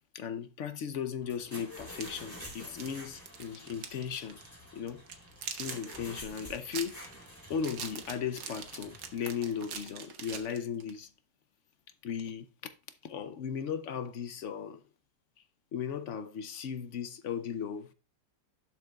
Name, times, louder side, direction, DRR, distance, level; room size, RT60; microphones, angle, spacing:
voice 1, 0.1-4.4 4.7-5.0 5.5-7.0 7.5-11.1 12.0-12.7 13.0-14.8 15.7-17.9, left 7 dB, 65° left, 0.7 m, -37 dB
sound 1, 1.2-9.8, left 1 dB, 10° left, 3.7 m, -49 dB
sound 2, 1.8-4.0 4.3-4.5 4.9-11.0, right 7 dB, 85° right, 1.8 m, -43 dB
11.5 x 7.8 x 2.3 m
omnidirectional pair, 1.9 m